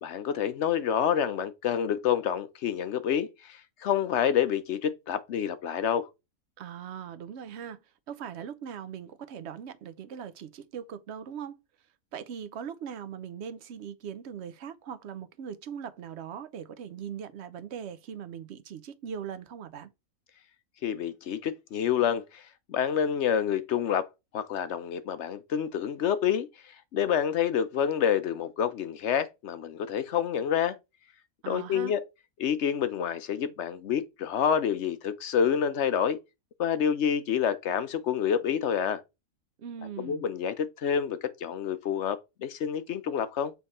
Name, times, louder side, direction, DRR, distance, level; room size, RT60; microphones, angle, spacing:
voice 1, 0.0-6.1 20.8-22.4 22.7-24.1 24.3-26.5 26.9-30.8 31.5-32.0 32.4-36.2 36.6-39.0 40.0-43.5, left 8 dB, 60° left, 0.8 m, -28 dB
voice 2, 6.6-11.6 12.1-19.9 31.4-32.0 39.6-40.2, right 8 dB, 60° right, 0.8 m, -40 dB
7.0 x 3.4 x 4.2 m
omnidirectional pair, 1.5 m